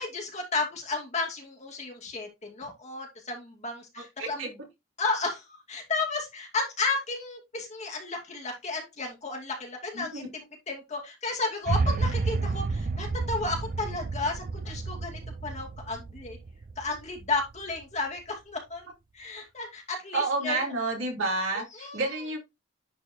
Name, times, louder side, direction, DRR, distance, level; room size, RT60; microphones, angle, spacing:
voice 1, 0.0-4.6 5.0-16.4 16.8-18.8 19.1-20.6 21.5-22.2, left 3 dB, 35° left, 1 dB, 2.4 m, -33 dB
voice 2, 4.0-4.5 9.9-10.3 20.1-22.4, right 3 dB, 85° right, 0 dB, 3.5 m, -30 dB
sound 1, 11.7-17.8, right 3 dB, 45° right, 0.4 m, -31 dB
10.5 x 4.5 x 2.8 m, 0.22 s
head